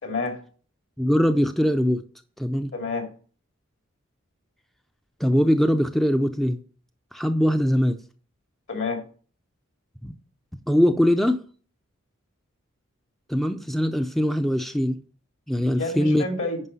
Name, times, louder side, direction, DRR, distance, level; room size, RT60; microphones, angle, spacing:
voice 1, 0.0-0.4 2.7-3.1 8.7-9.0 15.8-16.6, left 3 dB, 65° left, 2.6 m, -29 dB
voice 2, 1.0-2.0 2.4-2.7 5.2-6.6 7.1-8.0 10.0-10.1 10.7-11.4 13.3-15.0 15.5-16.2, equal, ahead, 0.5 m, -21 dB
9.7 x 5.5 x 5.4 m
head